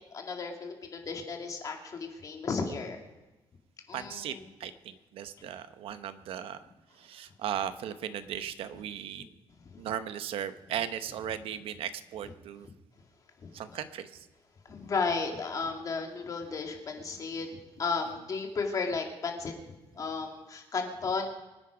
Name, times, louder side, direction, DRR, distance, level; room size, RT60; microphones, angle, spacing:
voice 1, 0.0-3.0 3.9-4.5 5.4-5.5 13.4-13.8 14.7-19.5 20.0-21.3, left 4 dB, 35° left, 2 dB, 2.4 m, -34 dB
voice 2, 3.9-4.3 4.6-6.6 7.0-9.3 9.8-12.7 13.5-14.1, right 10 dB, 65° right, 11 dB, 0.9 m, -37 dB
24.5 x 9.7 x 5.1 m, 1.1 s
cardioid pair, 145°, 10 cm